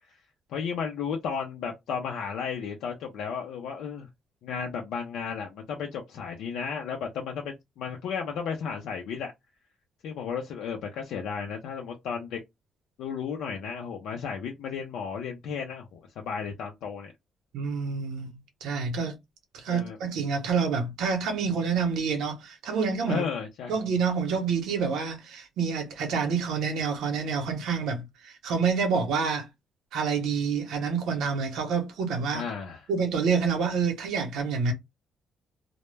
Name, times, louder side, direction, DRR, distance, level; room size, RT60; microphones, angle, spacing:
voice 1, 0.5-4.1 4.4-9.3 10.0-12.4 13.0-17.1 19.7-20.0 23.1-23.7 32.3-32.9, left 6 dB, 85° left, 0.5 m, -34 dB
voice 2, 17.5-18.3 18.6-19.2 19.5-23.2 23.7-29.5 29.9-32.4 32.9-34.7, right 5 dB, 85° right, 0.8 m, -28 dB
2.1 x 2.0 x 3.2 m
cardioid pair, 90°, 0 cm